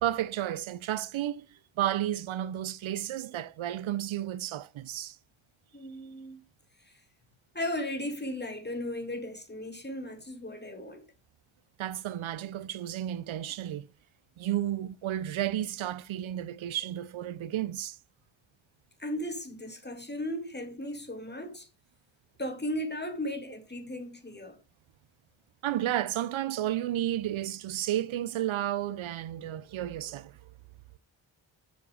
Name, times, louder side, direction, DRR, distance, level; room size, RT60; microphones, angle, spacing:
voice 1, 0.0-5.2 11.8-13.9 14.4-18.0 25.6-30.3, right 12 dB, 75° right, 0.7 m, -32 dB
voice 2, 5.7-6.4 6.9-7.0 7.5-11.0 19.0-21.7 22.4-24.6, left 1 dB, 20° left, 2.7 m, -36 dB
7.4 x 7.4 x 5.0 m
cardioid pair, 55°, 48 cm